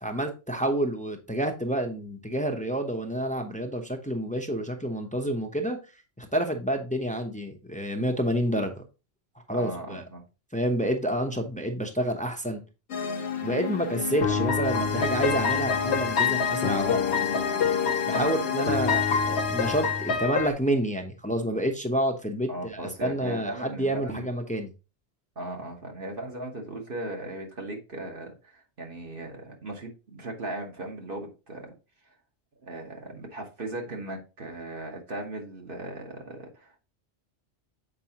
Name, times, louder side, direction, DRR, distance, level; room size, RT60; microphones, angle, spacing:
voice 1, 0.0-5.8 6.2-8.7 9.5-10.0 10.5-12.6 13.4-17.0 18.0-24.7, right 1 dB, 10° left, 0.7 m, -29 dB
voice 2, 9.5-10.2 18.2-18.5 22.5-24.3 25.4-31.7 32.6-36.8, right 1 dB, 50° right, 1.4 m, -37 dB
sound 1, 12.9-20.5, left 6 dB, 70° left, 1.1 m, -26 dB
7.5 x 4.6 x 2.9 m
omnidirectional pair, 1.2 m